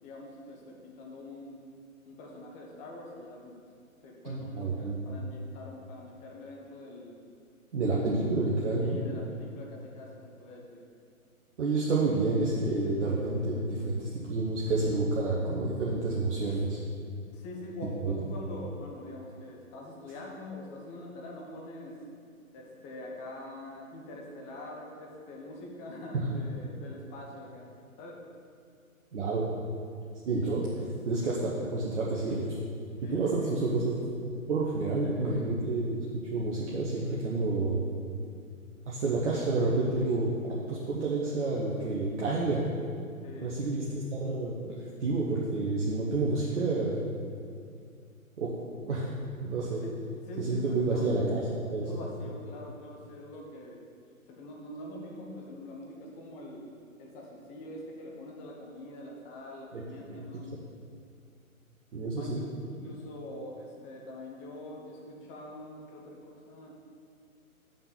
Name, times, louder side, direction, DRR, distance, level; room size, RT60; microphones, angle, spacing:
voice 1, 0.0-1.6 2.1-3.5 4.0-7.2 7.8-8.3 8.8-10.8 17.3-22.0 22.5-28.3 33.0-33.6 35.0-35.5 43.2-43.8 49.8-51.3 51.8-53.8 54.3-56.7 57.0-60.7 62.2-66.8, left 1 dB, 15° left, -1 dB, 0.9 m, -44 dB
voice 2, 4.2-5.0 7.7-9.0 11.6-16.8 18.0-18.2 29.1-29.5 30.2-32.6 33.1-33.9 34.5-37.8 38.9-40.3 40.7-42.6 43.4-44.7 45.0-47.0 48.4-48.5 48.8-49.1 49.4-49.8 50.4-51.9 59.7-59.8 60.1-60.2 61.9-62.4, right 3 dB, 55° right, -5 dB, 1.2 m, -29 dB
5.9 x 5.6 x 7.0 m, 2.3 s
figure-of-eight pair, 125°, 43 cm